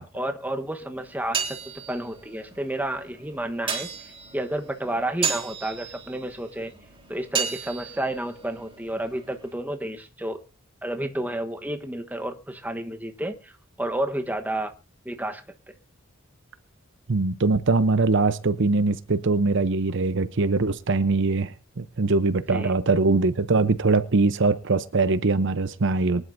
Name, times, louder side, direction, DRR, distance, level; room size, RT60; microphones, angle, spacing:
voice 1, 0.0-1.4 1.9-6.7 7.1-10.4 10.8-13.5 13.8-14.7 15.0-15.4 22.5-22.7 26.1-26.2, right 1 dB, 10° right, 1.1 m, -31 dB
sound 1, 1.0-9.5, right 6 dB, 25° right, 3.7 m, -34 dB
voice 2, 17.1-26.2, right 3 dB, 60° right, 0.8 m, -22 dB
23.5 x 11.0 x 2.7 m
head